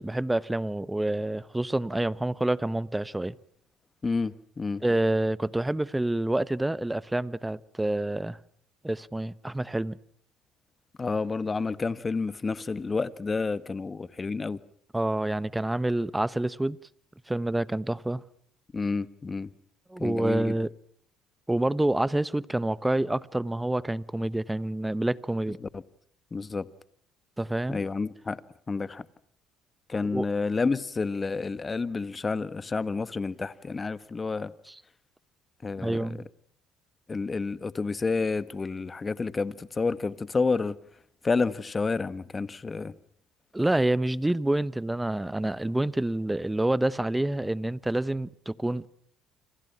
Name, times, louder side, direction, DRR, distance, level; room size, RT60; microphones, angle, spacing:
voice 1, 0.0-3.3 4.8-8.4 8.8-10.0 14.9-16.8 17.3-18.2 19.9-20.7 21.5-25.6 27.4-27.8 30.1-30.2 34.7-34.8 35.8-36.3 43.5-48.9, right 1 dB, 10° right, 1.1 m, -27 dB
voice 2, 4.0-4.8 11.0-14.6 18.7-19.5 20.0-20.5 25.6-25.8 26.3-26.7 27.7-28.4 28.7-29.0 29.9-34.5 35.6-36.2 37.1-40.8 41.2-42.9, left 4 dB, 25° left, 1.5 m, -29 dB
30.0 x 26.0 x 5.9 m
supercardioid pair, 85°, 0 cm